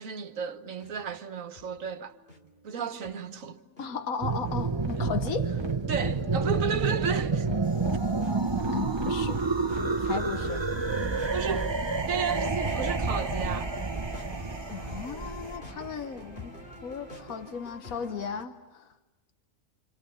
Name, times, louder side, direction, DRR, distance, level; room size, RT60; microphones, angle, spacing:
voice 1, 0.0-2.2 2.6-3.6 5.0-5.1 5.9-7.5 11.3-11.7 12.1-13.7, right 7 dB, 70° right, 1.5 m, -33 dB
sound 1, 0.8-18.4, left 3 dB, 40° left, 2.4 m, -50 dB
voice 2, 3.8-5.5 8.7-9.4 10.0-10.6 14.7-18.9, left 6 dB, 90° left, 1.6 m, -36 dB
sound 2, 4.2-16.9, right 3 dB, 25° right, 0.9 m, -29 dB
sound 3, 7.6-15.6, right 3 dB, 20° left, 2.5 m, -46 dB
29.0 x 27.5 x 7.0 m
omnidirectional pair, 1.4 m